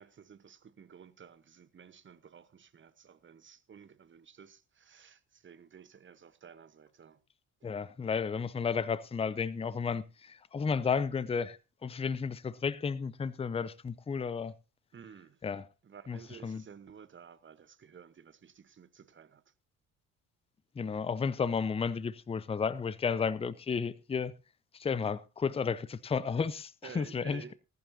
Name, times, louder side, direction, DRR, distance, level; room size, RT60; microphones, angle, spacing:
voice 1, 0.0-7.2 14.9-15.4 15.8-19.5 26.8-27.5, right 7 dB, 25° right, 1.1 m, -53 dB
voice 2, 7.6-14.5 15.4-15.7 16.1-16.6 20.8-24.3 24.7-27.5, left 5 dB, 15° left, 0.6 m, -33 dB
19.5 x 11.0 x 2.8 m
figure-of-eight pair, 50°, 42 cm